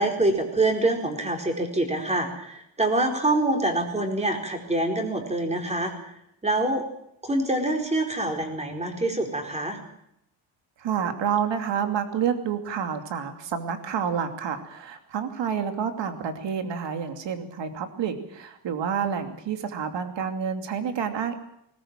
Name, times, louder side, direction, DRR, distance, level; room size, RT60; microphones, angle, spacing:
voice 1, 0.0-5.9 6.4-6.9 7.2-9.8, right 2 dB, 15° right, 3 dB, 4.4 m, -25 dB
voice 2, 10.8-21.4, right 7 dB, 65° right, 7 dB, 2.8 m, -29 dB
20.5 x 19.5 x 7.5 m, 0.76 s
cardioid pair, 140°, 47 cm